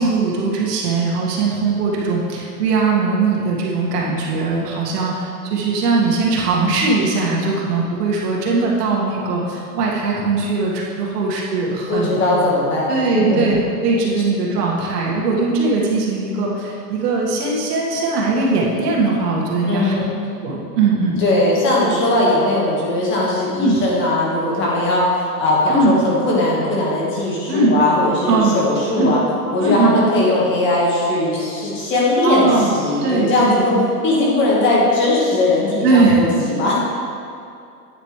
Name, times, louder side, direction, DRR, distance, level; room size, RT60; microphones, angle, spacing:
voice 1, 0.0-12.2 12.9-20.0 20.4-21.2 23.6-23.8 25.7-26.0 27.5-27.8 28.3-28.6 29.0-29.2 29.6-30.0 32.2-33.6 35.8-36.3, right 3 dB, 75° right, -3 dB, 2.1 m, -19 dB
voice 2, 11.9-13.5 19.6-20.2 21.2-29.2 29.5-36.8, left 1 dB, 25° left, -4 dB, 1.7 m, -19 dB
9.3 x 7.9 x 3.3 m, 2.5 s
supercardioid pair, 155°, 47 cm